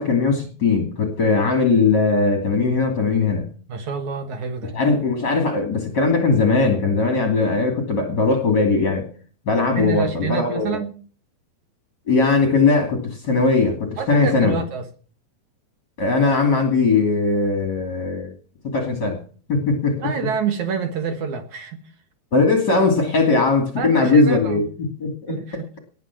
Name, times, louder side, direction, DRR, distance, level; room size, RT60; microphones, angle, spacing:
voice 1, 0.0-3.5 4.7-9.1 9.5-10.8 12.1-14.6 16.0-18.3 18.7-19.2 19.5-20.1 22.3-25.4, left 4 dB, 30° left, 4 dB, 2.3 m, -19 dB
voice 2, 3.7-4.8 9.8-10.9 14.0-14.9 20.0-21.8 23.8-24.6 25.3-25.7, right 6 dB, 60° right, 7 dB, 2.3 m, -27 dB
19.5 x 9.1 x 6.0 m, 0.42 s
omnidirectional pair, 4.8 m